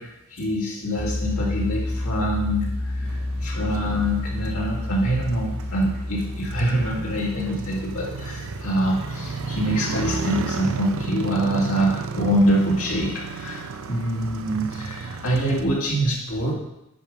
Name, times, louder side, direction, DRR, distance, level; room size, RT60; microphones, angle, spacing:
voice 1, 0.0-16.5, right 1 dB, 80° left, -4 dB, 2.1 m, -25 dB
sound 1, 1.0-11.8, left 1 dB, 25° left, 3.1 m, -31 dB
Motorcycle, 3.1-15.6, right 4 dB, 65° right, 0.5 m, -33 dB
7.5 x 4.8 x 5.2 m, 0.84 s
head